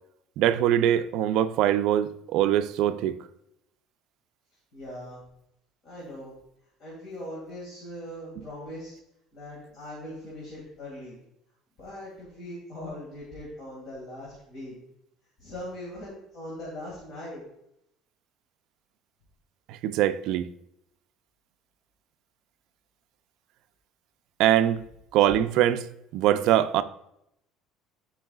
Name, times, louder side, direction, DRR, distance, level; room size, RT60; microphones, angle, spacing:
voice 1, 0.4-3.2 19.7-20.5 24.4-24.8 25.1-25.8 26.1-26.8, right 11 dB, 55° right, 0.3 m, -23 dB
voice 2, 4.7-5.2 5.8-6.3 6.8-9.0 9.3-11.2 11.8-14.7 15.4-17.4, left 1 dB, 40° left, 1.9 m, -40 dB
11.5 x 4.6 x 2.3 m
cardioid pair, 175°, 0 cm